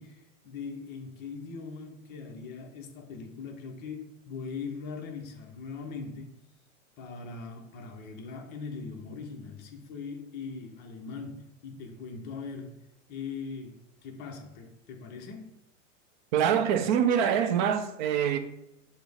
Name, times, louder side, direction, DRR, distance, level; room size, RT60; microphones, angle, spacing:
voice 1, 0.0-6.4 7.0-15.5, left 5 dB, 25° left, 0.6 m, -41 dB
voice 2, 16.3-18.4, right 8 dB, 40° right, 0.4 m, -25 dB
5.9 x 2.1 x 3.4 m
hypercardioid pair, 125°, 39 cm